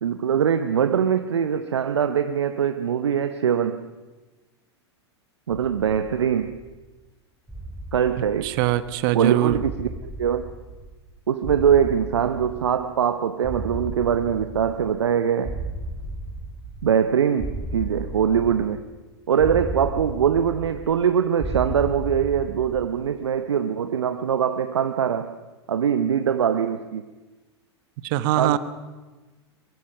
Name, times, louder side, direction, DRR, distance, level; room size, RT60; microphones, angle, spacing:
voice 1, 0.0-3.9 5.5-6.6 7.9-8.6 9.1-9.9 10.2-10.5 11.3-15.6 16.8-18.9 19.3-25.4 25.7-27.0 28.4-28.6, right 8 dB, 75° right, 1.0 m, -22 dB
sound 1, 5.6-6.8 7.5-9.0 9.5-11.1 11.4-13.0 13.4-15.1 15.4-17.1 17.4-19.0 19.4-21.1 21.4-23.0, right 2 dB, 5° right, 4.0 m, -35 dB
voice 2, 8.4-9.6 28.0-28.6, right 15 dB, 50° right, 1.3 m, -22 dB
23.5 x 22.0 x 5.9 m
figure-of-eight pair, 95°, 15 cm